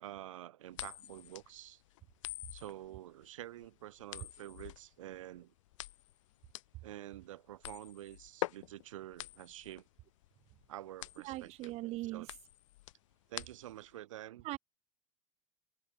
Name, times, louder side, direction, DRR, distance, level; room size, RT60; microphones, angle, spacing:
voice 1, 0.0-1.8 2.5-5.5 6.8-9.9 10.7-11.8 12.0-12.3 13.3-14.5, right 13 dB, 90° right, 0.7 m, -48 dB
sound 1, 0.7-13.9, left 17 dB, 80° left, 1.6 m, -46 dB
voice 2, 11.3-12.3 14.5-14.6, right 18 dB, 40° right, 0.5 m, -39 dB
supercardioid pair, 110°, 16 cm